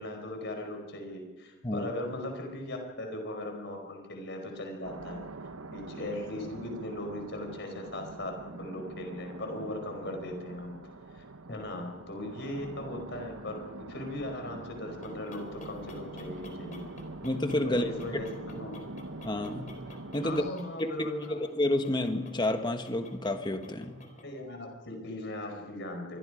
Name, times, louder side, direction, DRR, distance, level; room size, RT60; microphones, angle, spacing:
voice 1, 0.0-5.2 5.7-10.8 11.1-13.6 13.9-16.9 17.6-18.8 20.2-21.4 24.2-26.2, left 1 dB, 55° left, 3 dB, 4.9 m, -38 dB
sound 1, 4.8-20.5, right 2 dB, 80° right, 1.0 m, -44 dB
sound 2, 14.7-24.4, left 2 dB, 35° left, 3.9 m, -51 dB
voice 2, 17.2-17.9 19.2-20.4 20.8-24.0, left 1 dB, 20° left, 7 dB, 1.3 m, -30 dB
26.5 x 22.5 x 5.1 m, 1.3 s
head